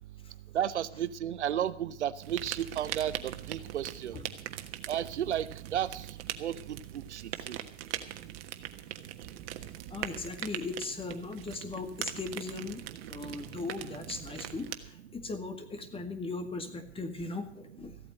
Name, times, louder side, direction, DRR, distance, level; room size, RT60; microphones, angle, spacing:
voice 1, 0.5-4.2 4.9-6.1 6.4-7.6, right 10 dB, 85° right, 15 dB, 0.8 m, -33 dB
sound 1, 2.2-14.8, right 13 dB, 60° right, 1.4 m, -41 dB
voice 2, 9.9-12.8 13.1-18.0, left 3 dB, 15° left, 8 dB, 2.1 m, -38 dB
15.0 x 8.7 x 7.5 m, 0.66 s
hypercardioid pair, 100°, 34 cm